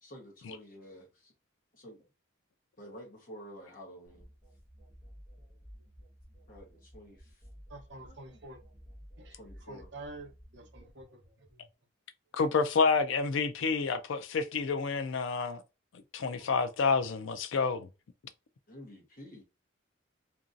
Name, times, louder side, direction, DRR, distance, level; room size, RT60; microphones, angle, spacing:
voice 1, 0.0-1.3 1.8-2.0 2.8-4.3 6.5-7.4 8.0-8.4 9.3-9.9 18.7-19.4, equal, 45° left, 1.0 m, -50 dB
sound 1, 4.1-11.7, equal, 15° left, 1.0 m, -54 dB
voice 2, 7.7-8.6 9.2-9.4 9.7-11.2, right 2 dB, 60° right, 0.7 m, -47 dB
voice 3, 12.4-15.6 16.1-17.9, left 4 dB, 75° left, 0.4 m, -29 dB
2.9 x 2.6 x 2.5 m
head